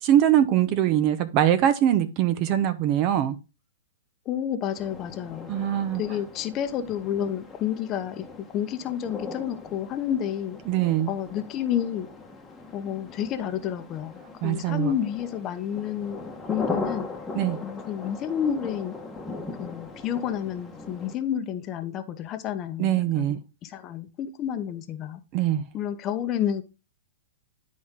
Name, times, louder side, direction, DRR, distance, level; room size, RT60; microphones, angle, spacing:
voice 1, 0.0-3.4 5.5-6.0 10.7-11.1 14.4-14.9 17.3-17.6 22.8-23.4 25.3-25.6, right 11 dB, 40° right, 0.9 m, -22 dB
voice 2, 4.2-5.5 6.0-8.2 8.5-10.6 11.1-12.1 12.7-17.1 17.6-19.0 19.6-25.2 25.7-26.6, left 9 dB, 30° left, 0.8 m, -30 dB
sound 1, 4.7-21.2, left 3 dB, 10° left, 1.2 m, -39 dB
10.5 x 4.2 x 3.7 m
hypercardioid pair, 145°, 0 cm